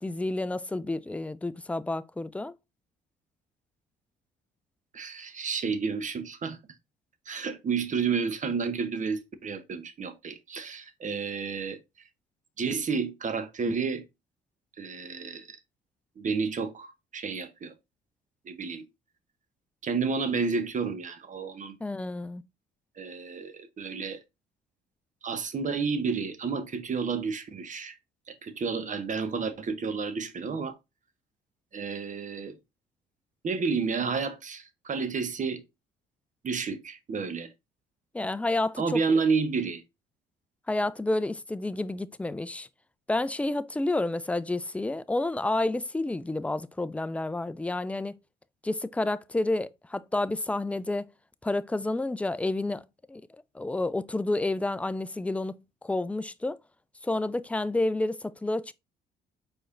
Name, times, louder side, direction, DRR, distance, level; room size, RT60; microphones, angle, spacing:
voice 1, 0.0-2.5 21.8-22.4 38.1-39.0 40.7-42.7 43.1-48.2 48.6-51.1 51.4-53.2 53.5-56.6 57.0-58.7, left 2 dB, 5° left, 0.3 m, -30 dB
voice 2, 4.9-6.6 7.3-11.8 12.6-14.0 14.8-15.6 16.2-17.7 18.5-18.8 19.8-21.8 23.0-24.2 25.2-27.9 28.3-30.8 31.7-32.5 33.4-35.6 36.4-37.5 38.8-39.8, right 5 dB, 40° right, 0.8 m, -30 dB
4.8 x 4.2 x 2.5 m
supercardioid pair, 60°, 20 cm